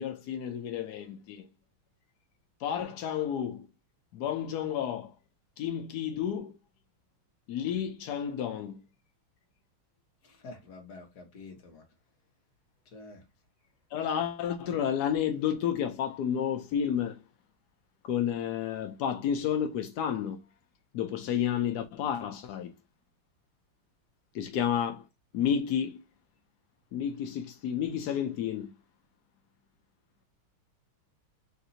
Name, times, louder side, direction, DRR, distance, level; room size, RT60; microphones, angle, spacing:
voice 1, 0.0-1.5 2.6-3.7 4.1-5.1 5.6-6.6 7.5-8.8 13.9-17.2 18.0-20.4 20.9-22.7 24.3-25.0 25.3-26.0 26.9-28.7, left 9 dB, 70° left, 0.9 m, -31 dB
voice 2, 10.2-11.8 12.9-13.2, left 3 dB, 55° left, 1.7 m, -48 dB
4.0 x 2.6 x 4.2 m
omnidirectional pair, 2.3 m